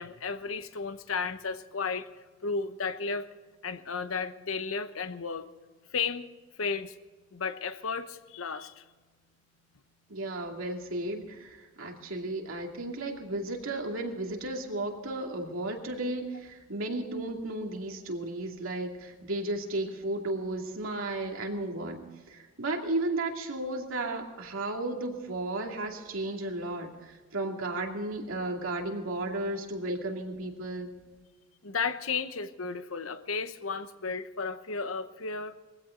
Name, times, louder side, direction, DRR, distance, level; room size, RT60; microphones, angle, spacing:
voice 1, 0.0-2.1 2.4-3.3 3.6-5.5 5.9-6.3 6.6-6.9 7.3-8.8 31.6-35.5, left 5 dB, 85° left, 11 dB, 1.0 m, -33 dB
voice 2, 10.1-30.9, right 2 dB, 85° right, 1 dB, 2.6 m, -34 dB
20.5 x 16.0 x 3.9 m, 1.3 s
head